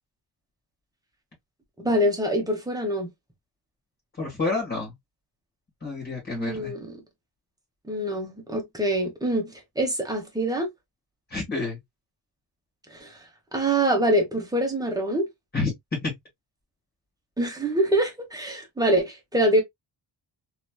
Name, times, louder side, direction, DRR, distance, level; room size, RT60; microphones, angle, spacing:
voice 1, 1.8-3.1 6.3-6.9 7.9-10.7 12.9-13.2 13.5-15.3 17.4-19.6, right 1 dB, 10° right, 1.0 m, -25 dB
voice 2, 4.2-4.9 5.8-6.7 11.3-11.8 15.5-15.7 16.0-16.1, left 3 dB, 30° left, 2.0 m, -29 dB
3.2 x 3.0 x 2.2 m
wide cardioid pair, 165°, 42 cm